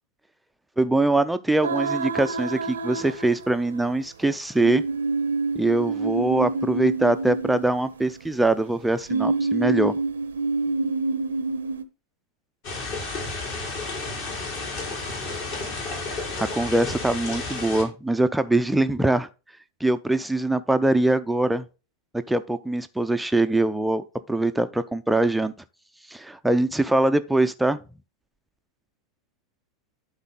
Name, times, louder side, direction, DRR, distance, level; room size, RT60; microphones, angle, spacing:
voice 1, 0.8-4.8 5.6-9.9 14.0-14.1 16.1-19.3 19.8-21.6 22.3-25.5 26.1-27.8, right 2 dB, 5° right, 0.6 m, -23 dB
sound 1, 1.6-3.8 4.6-8.3 9.1-11.8, right 3 dB, 70° right, 0.8 m, -27 dB
sound 2, 12.6-17.8, left 3 dB, 45° left, 3.2 m, -32 dB
11.5 x 4.0 x 3.8 m
figure-of-eight pair, 90°, 0 cm